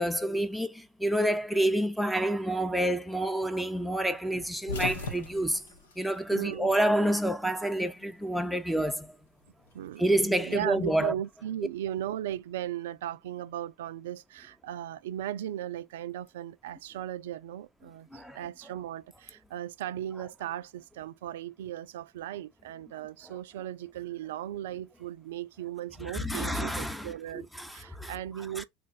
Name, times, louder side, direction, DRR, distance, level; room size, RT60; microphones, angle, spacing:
voice 1, 0.0-5.6 6.0-9.1 10.0-11.1 18.1-18.4 26.1-28.1 28.6-28.7, right 1 dB, ahead, 0.6 m, -28 dB
sound 1, 4.4-6.9 7.2-8.3 9.4-10.9, left 4 dB, 85° left, 1.1 m, -39 dB
voice 2, 6.3-6.8 9.7-28.6, right 12 dB, 75° right, 0.3 m, -37 dB
3.0 x 2.2 x 4.2 m
hypercardioid pair, 90°, 0 cm